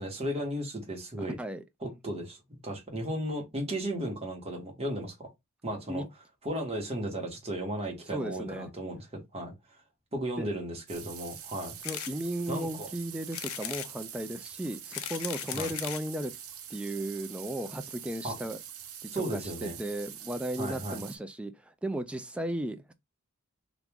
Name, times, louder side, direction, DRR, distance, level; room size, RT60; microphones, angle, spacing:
voice 1, 0.0-1.4 1.8-5.3 5.6-6.0 6.4-9.5 10.1-11.8 12.5-12.9 15.5-15.7 18.2-18.4 19.1-19.8 20.6-21.0, right 1 dB, 30° right, 1.2 m, -35 dB
voice 2, 1.2-1.6 5.9-6.1 8.1-8.7 10.4-10.5 11.8-16.3 16.7-18.6 19.0-22.9, right 1 dB, 5° right, 0.3 m, -35 dB
sound 1, 10.9-21.2, right 10 dB, 80° right, 0.6 m, -45 dB
sound 2, 11.8-12.1 12.6-12.7 13.3-13.9 14.7-16.1 16.9-17.0 17.2-17.3 17.5-17.6, left 12 dB, 80° left, 0.4 m, -37 dB
2.9 x 2.5 x 3.4 m
head